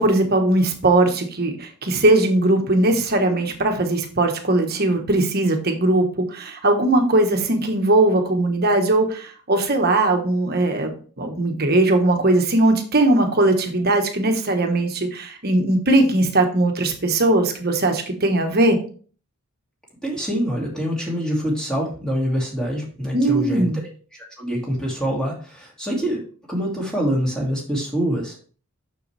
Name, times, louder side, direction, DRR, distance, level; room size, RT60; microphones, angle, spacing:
voice 1, 0.0-10.9 11.2-18.8 23.1-23.8, right 2 dB, 45° right, 4 dB, 1.3 m, -19 dB
voice 2, 20.0-23.7 24.1-26.2 26.5-28.4, equal, 5° left, -3 dB, 2.3 m, -25 dB
6.9 x 6.5 x 3.4 m, 0.41 s
head